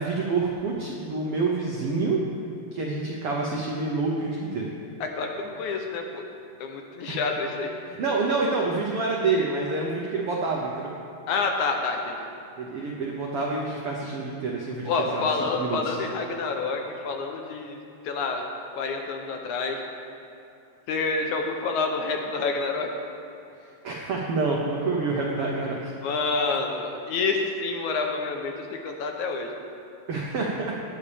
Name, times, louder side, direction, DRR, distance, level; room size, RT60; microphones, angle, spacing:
voice 1, 0.0-2.2 2.7-4.7 7.1-7.2 7.9-10.9 12.6-15.2 15.5-16.0 23.8-25.9 30.1-30.7, right 3 dB, 75° right, -2 dB, 1.3 m, -27 dB
voice 2, 5.0-6.2 6.6-7.7 11.3-12.2 14.9-17.8 18.0-18.5 18.8-19.8 20.9-22.9 26.0-29.5, left 4 dB, 70° left, 3 dB, 2.0 m, -28 dB
18.5 x 9.7 x 3.5 m, 2.7 s
omnidirectional pair, 3.9 m